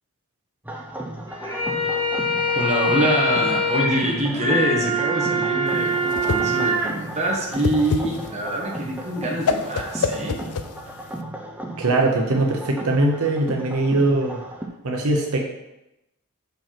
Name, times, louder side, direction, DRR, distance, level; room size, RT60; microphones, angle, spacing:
sound 1, 0.6-14.7, right 1 dB, 5° right, 0.6 m, -35 dB
sound 2, 1.3-6.9, equal, 15° left, 1.8 m, -24 dB
voice 1, 2.6-10.4, right 1 dB, 30° right, -2 dB, 1.3 m, -25 dB
Whoosh swoosh swish, 5.7-11.2, left 5 dB, 80° left, 0.5 m, -28 dB
voice 2, 11.8-14.4 14.8-15.4, right 2 dB, 75° right, 1 dB, 0.8 m, -21 dB
5.3 x 4.4 x 5.9 m, 0.92 s
head